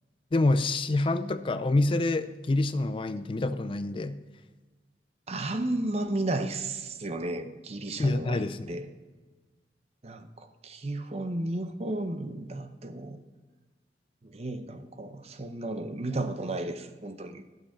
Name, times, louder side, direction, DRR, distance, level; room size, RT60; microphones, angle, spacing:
voice 1, 0.3-4.2 8.0-8.7, left 2 dB, 30° left, 12 dB, 0.4 m, -27 dB
voice 2, 5.3-8.9 10.0-13.2 14.2-17.4, right 2 dB, 35° right, 9 dB, 0.7 m, -33 dB
11.5 x 6.7 x 5.6 m, 1.3 s
head